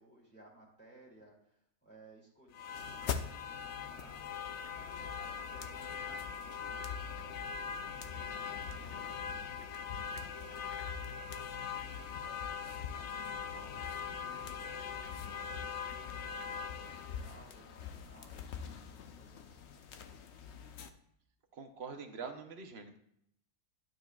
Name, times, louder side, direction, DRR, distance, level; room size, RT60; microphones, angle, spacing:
voice 1, 0.0-3.2 3.8-4.3 4.7-8.1 8.4-9.6 10.2-11.0 11.7-13.3 13.5-14.7 15.1-15.9 16.4-19.6, right 1 dB, 5° left, -4 dB, 2.4 m, -60 dB
sound 1, 2.5-20.9, left 7 dB, 65° left, 0.7 m, -41 dB
voice 2, 21.5-23.0, right 5 dB, 50° right, 6 dB, 0.8 m, -44 dB
12.0 x 7.5 x 2.3 m, 0.74 s
omnidirectional pair, 1.7 m